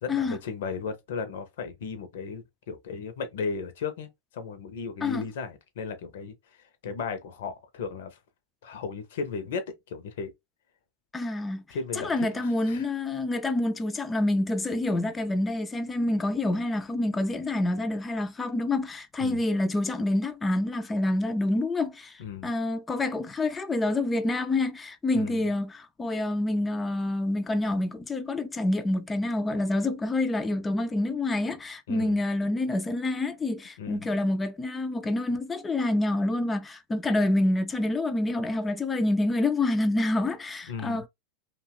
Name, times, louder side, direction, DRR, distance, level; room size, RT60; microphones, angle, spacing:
voice 1, 0.0-6.3 6.8-8.2 8.6-10.3 11.7-12.9 19.2-19.4 22.2-22.5 25.1-25.5 31.9-32.2 33.8-34.1 40.7-41.0, left 5 dB, 55° left, 0.6 m, -35 dB
voice 2, 11.1-11.6 11.9-41.1, left 2 dB, 15° left, 0.3 m, -27 dB
2.8 x 2.1 x 2.3 m
figure-of-eight pair, 90°, 0 cm